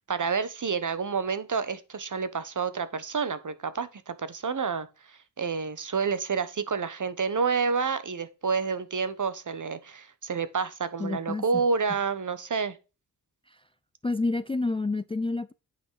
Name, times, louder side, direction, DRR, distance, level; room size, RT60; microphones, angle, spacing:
voice 1, 0.1-12.8, right 5 dB, 45° right, 1.1 m, -29 dB
voice 2, 11.0-11.4 14.0-15.5, left 3 dB, 15° left, 0.4 m, -28 dB
9.0 x 5.9 x 4.6 m
wide cardioid pair, 95°, 41 cm